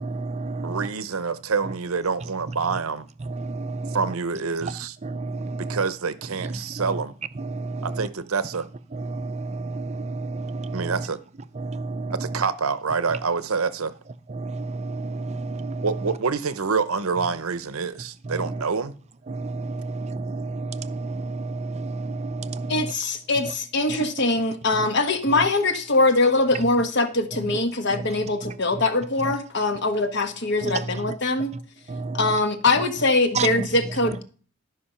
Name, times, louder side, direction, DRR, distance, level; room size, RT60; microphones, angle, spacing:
voice 1, 0.1-0.8 3.4-4.0 5.0-5.8 7.4-7.9 8.9-10.8 11.6-12.1 14.3-15.8 19.3-22.9 31.9-32.2 33.4-33.5, right 3 dB, 30° right, 0.5 m, -31 dB
voice 2, 0.6-3.1 3.9-5.0 5.6-7.1 7.8-8.7 10.7-11.2 12.2-13.9 15.8-18.9, right 5 dB, 75° right, 0.8 m, -27 dB
voice 3, 22.7-31.6 32.1-34.2, left 2 dB, 55° left, 1.3 m, -22 dB
13.0 x 5.5 x 5.6 m
head